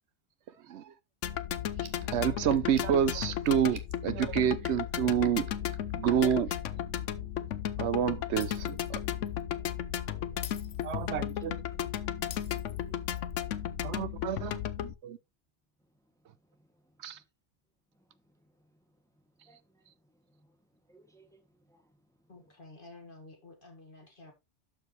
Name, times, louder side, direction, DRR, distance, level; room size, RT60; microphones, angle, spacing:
sound 1, 1.2-14.9, left 10 dB, 90° left, 1.0 m, -34 dB
sound 2, 1.7-6.7, right 5 dB, 50° right, 1.2 m, -51 dB
voice 1, 2.1-5.5 5.9-6.5 7.8-9.0 10.8-11.6 13.8-15.2 17.0-17.2, right 9 dB, 70° right, 0.9 m, -29 dB
voice 2, 7.0-7.6 9.6-9.7 10.1-10.5 10.9-11.1 11.9-12.1 12.7-13.0 19.4-19.8 20.9-21.4 21.7-21.8 22.4-22.5, right 1 dB, 5° left, 1.4 m, -62 dB
Shatter, 8.4-9.0 9.3-9.4 10.4-11.4 12.3-13.3, left 10 dB, 65° left, 0.9 m, -47 dB
voice 3, 22.3-24.3, left 2 dB, 45° left, 1.9 m, -51 dB
12.0 x 4.7 x 3.1 m
omnidirectional pair, 1.2 m